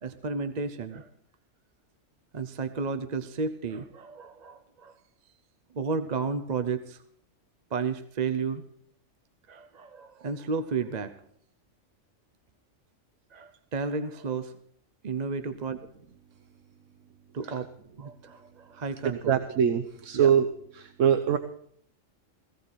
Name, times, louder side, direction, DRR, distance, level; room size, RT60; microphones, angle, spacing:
voice 1, 0.0-1.1 2.3-4.9 5.7-7.0 7.7-8.6 9.5-11.2 13.3-14.5 15.0-15.8 17.3-17.7 18.0-19.3 20.1-20.3, right 4 dB, 40° right, 10 dB, 0.7 m, -32 dB
voice 2, 19.3-20.5 20.7-21.4, right 8 dB, 75° right, 7 dB, 1.2 m, -23 dB
16.5 x 16.5 x 4.3 m, 0.63 s
omnidirectional pair, 1.3 m